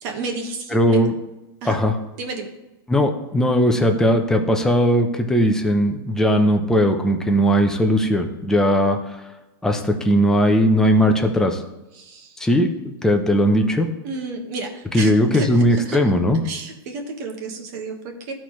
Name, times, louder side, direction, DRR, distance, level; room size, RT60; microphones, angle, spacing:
voice 1, 0.0-1.0 1.6-1.8 2.2-2.5 11.9-12.4 14.0-16.0 16.4-18.3, right 3 dB, 50° right, 3 dB, 1.4 m, -31 dB
voice 2, 0.7-1.1 1.7-1.9 2.9-9.2 9.6-11.6 12.4-13.9 14.9-16.4, equal, 5° left, 3 dB, 0.8 m, -18 dB
13.0 x 4.4 x 3.2 m, 1.0 s
supercardioid pair, 145°, 13 cm